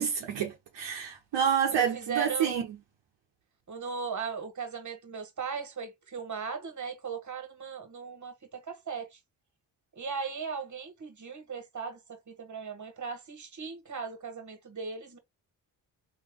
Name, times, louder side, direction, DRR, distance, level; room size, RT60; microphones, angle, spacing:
voice 1, 0.0-2.6, right 8 dB, 65° right, 0.9 m, -28 dB
voice 2, 1.7-2.6 3.7-9.2 10.0-15.2, right 6 dB, 40° right, 1.4 m, -37 dB
3.4 x 2.8 x 3.5 m
supercardioid pair, 45°, 46 cm